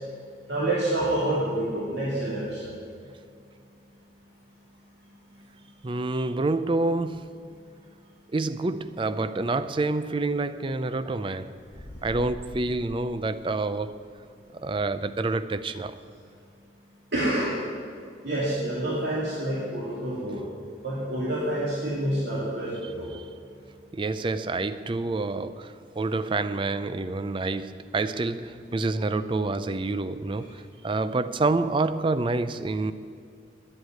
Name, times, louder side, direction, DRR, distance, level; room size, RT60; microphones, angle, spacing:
voice 1, 0.5-2.7 17.1-17.5 18.2-20.5 20.8-23.1, right 1 dB, 70° right, 2.6 m, -28 dB
voice 2, 5.8-7.4 8.3-11.5 12.0-14.0 14.5-16.0 22.8-23.3 23.9-32.9, right 3 dB, 25° right, 0.4 m, -28 dB
sound 1, 11.7-14.0, left 1 dB, 75° left, 1.2 m, -43 dB
10.5 x 7.9 x 9.3 m
head